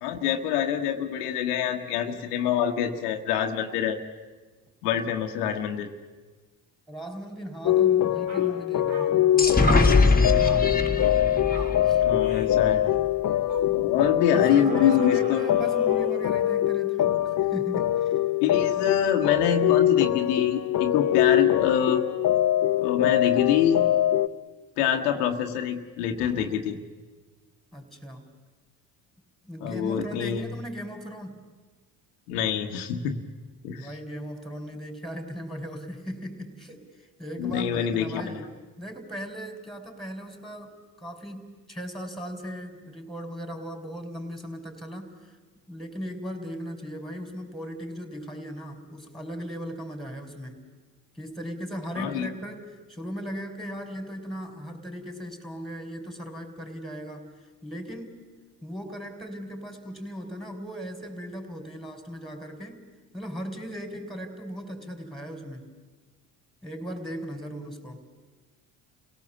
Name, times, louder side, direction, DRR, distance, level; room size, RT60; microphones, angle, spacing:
voice 1, 0.0-4.0 4.8-5.9 12.0-12.9 13.6-15.4 18.4-22.0 22.8-23.8 24.8-26.8 29.6-30.4 32.3-33.2 33.6-33.9 37.4-38.3 51.9-52.3, left 9 dB, 85° left, 4 dB, 1.4 m, -25 dB
voice 2, 6.9-10.1 11.8-12.0 14.3-18.2 27.7-28.3 29.4-31.4 33.7-38.5 38.8-40.7 41.0-45.4 45.7-50.7 51.1-58.2 58.6-62.9 63.1-65.7 66.6-68.0, equal, ahead, 5 dB, 4.2 m, -38 dB
sound 1, 7.6-24.3, left 12 dB, 40° left, 1.0 m, -23 dB
sound 2, 7.7-7.9 8.3-8.5 8.9-9.6 9.9-10.1 10.4-10.6 11.0-11.2 11.5-11.8 12.2-12.5 12.8-13.1 13.5-13.7 14.3-16.4, right 4 dB, 70° right, 3.7 m, -41 dB
sound 3, 9.4-13.1, left 3 dB, 20° left, 2.0 m, -23 dB
29.0 x 17.5 x 7.2 m, 1.3 s
hypercardioid pair, 60°, 45 cm